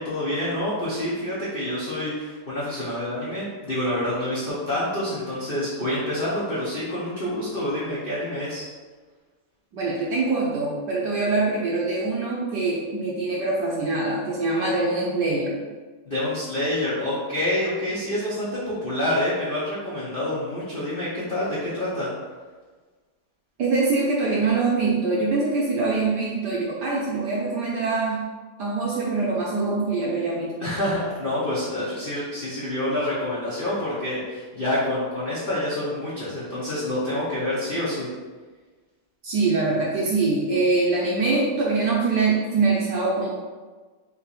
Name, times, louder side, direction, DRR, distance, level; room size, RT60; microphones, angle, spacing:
voice 1, 0.0-8.6 16.1-22.1 30.6-38.1, left 1 dB, 60° left, -9 dB, 0.5 m, -27 dB
voice 2, 9.7-15.5 23.6-28.2 28.6-30.5 39.2-43.3, right 3 dB, 65° right, -5 dB, 1.0 m, -24 dB
3.5 x 3.0 x 4.0 m, 1.4 s
omnidirectional pair, 2.4 m